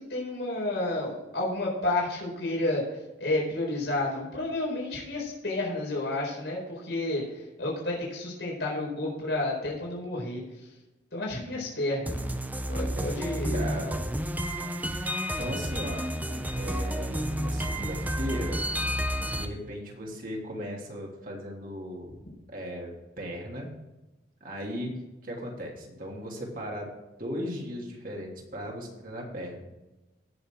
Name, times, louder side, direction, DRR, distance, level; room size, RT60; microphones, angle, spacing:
voice 1, 0.0-10.7 11.1-12.3 12.7-13.6, left 2 dB, 80° left, -3 dB, 4.5 m, -31 dB
sound 1, 12.1-19.4, equal, 10° right, 0.8 m, -30 dB
voice 2, 13.5-14.0 15.0-16.1 16.5-18.6 19.3-22.1 22.5-23.7 24.4-24.9 25.2-26.9 27.2-29.6, equal, 50° right, -1 dB, 3.0 m, -37 dB
17.5 x 7.1 x 3.8 m, 1.0 s
head